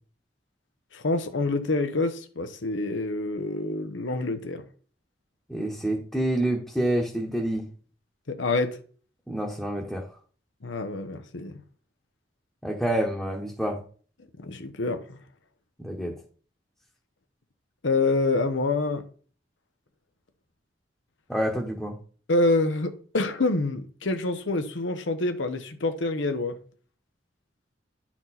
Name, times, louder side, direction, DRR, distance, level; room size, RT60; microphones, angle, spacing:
voice 1, 0.9-4.6 8.3-8.8 10.6-11.6 14.4-15.2 17.8-19.0 22.3-26.6, left 2 dB, 90° left, 0.9 m, -27 dB
voice 2, 5.5-7.7 9.3-10.1 12.6-13.8 15.8-16.1 21.3-22.0, right 1 dB, ahead, 1.0 m, -27 dB
10.5 x 4.4 x 4.2 m
head